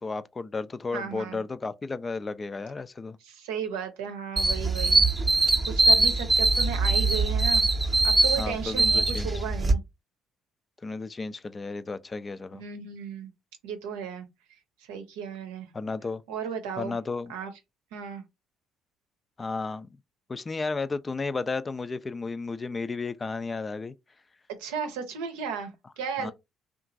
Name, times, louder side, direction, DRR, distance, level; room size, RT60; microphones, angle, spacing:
voice 1, 0.0-3.2 8.4-9.4 10.8-12.6 15.7-16.2 16.8-17.3 19.4-19.9 20.3-23.9 26.2-26.3, left 3 dB, 30° left, 0.3 m, -33 dB
voice 2, 0.9-1.4 3.2-5.0 5.6-7.6 8.0-9.8 12.5-13.3 13.6-14.3 14.9-15.7 16.3-16.9 17.3-17.5 17.9-18.2 24.6-26.3, right 7 dB, 75° right, 0.6 m, -35 dB
sound 1, 4.4-9.7, right 2 dB, 25° right, 0.7 m, -22 dB
2.9 x 2.4 x 2.5 m
hypercardioid pair, 50°, 0 cm